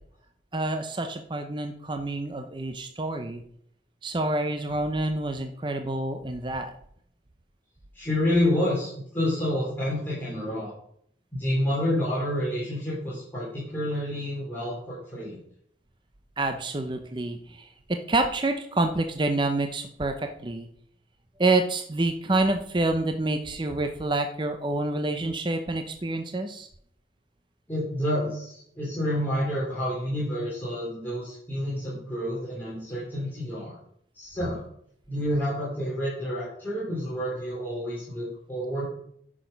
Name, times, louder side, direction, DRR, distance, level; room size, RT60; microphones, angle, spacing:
voice 1, 0.5-3.4 4.0-6.7 16.4-20.1 20.4-20.7 21.4-26.7, right 2 dB, 25° right, 6 dB, 0.6 m, -27 dB
voice 2, 7.9-10.7 11.3-15.4 27.7-33.8 34.1-34.6 35.1-38.8, left 1 dB, 10° left, -8 dB, 3.4 m, -29 dB
10.0 x 6.3 x 5.2 m, 0.68 s
head